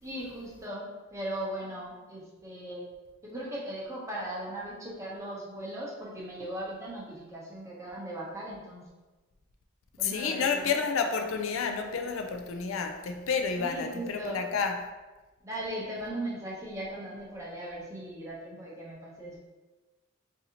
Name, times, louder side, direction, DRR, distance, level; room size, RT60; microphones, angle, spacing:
voice 1, 0.0-2.9 3.2-8.8 10.0-10.7 13.6-14.4 15.4-19.4, right 1 dB, 15° right, 0.8 m, -38 dB
voice 2, 10.0-14.9, left 5 dB, 75° left, 0.4 m, -30 dB
4.0 x 2.7 x 2.8 m
head